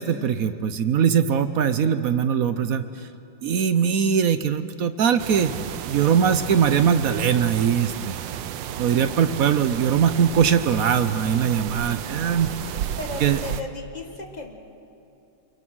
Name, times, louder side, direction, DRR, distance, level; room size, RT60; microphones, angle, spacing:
voice 1, 0.0-3.1 3.4-5.5 5.9-8.2 8.8-12.5 13.2-13.4, right 7 dB, 60° right, 11 dB, 1.0 m, -21 dB
sound 1, 5.2-13.6, right 10 dB, 80° right, 1.5 m, -32 dB
voice 2, 13.0-14.6, left 3 dB, 25° left, 3 dB, 1.9 m, -36 dB
26.5 x 23.0 x 6.2 m, 2.7 s
omnidirectional pair, 2.1 m